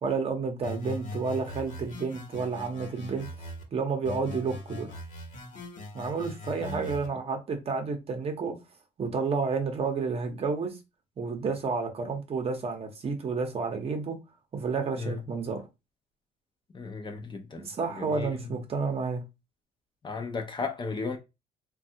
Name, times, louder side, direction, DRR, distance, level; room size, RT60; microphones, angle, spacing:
voice 1, 0.0-3.3 3.7-5.0 5.9-8.5 9.0-10.8 11.2-14.2 14.5-15.6 17.6-19.2, right 4 dB, 35° right, 0.8 m, -30 dB
sound 1, 0.6-3.6 4.0-7.1, left 1 dB, 50° left, 1.0 m, -40 dB
voice 2, 16.7-17.7 18.0-18.3 20.0-21.2, left 4 dB, 25° left, 0.5 m, -35 dB
3.2 x 2.3 x 2.7 m
cardioid pair, 110°, 17 cm